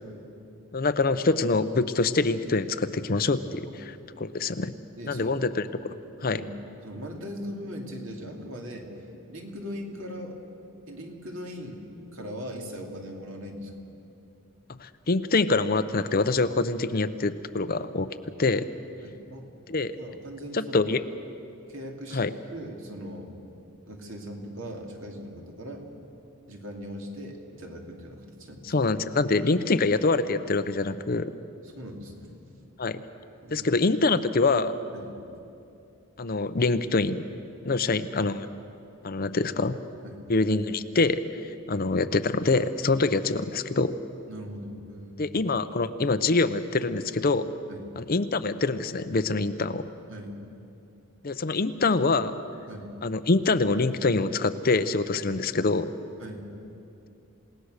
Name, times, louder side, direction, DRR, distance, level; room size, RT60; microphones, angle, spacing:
voice 1, 0.7-3.7 4.2-4.7 5.1-5.5 6.2-6.4 14.8-18.1 18.4-18.7 19.7-19.9 20.5-21.0 22.1-22.3 28.7-31.3 32.8-33.0 33.5-34.8 36.2-37.2 37.6-38.5 39.0-39.8 40.3-44.0 45.2-47.5 48.0-49.9 51.2-52.4 53.0-55.9, left 3 dB, 45° left, 11 dB, 0.6 m, -25 dB
voice 2, 5.0-5.5 5.9-6.0 6.3-6.5 6.8-10.4 10.9-11.8 12.1-13.7 19.0-19.5 19.9-20.9 21.7-23.3 23.9-25.9 26.5-28.8 31.6-32.3 33.4-33.9 34.9-35.1 37.7-37.9 40.0-40.2 44.3-45.4 47.7-47.9 50.1-50.4 52.7-52.9 56.2-56.5, equal, 60° right, 1 dB, 2.7 m, -40 dB
28.0 x 18.0 x 6.5 m, 2.7 s
head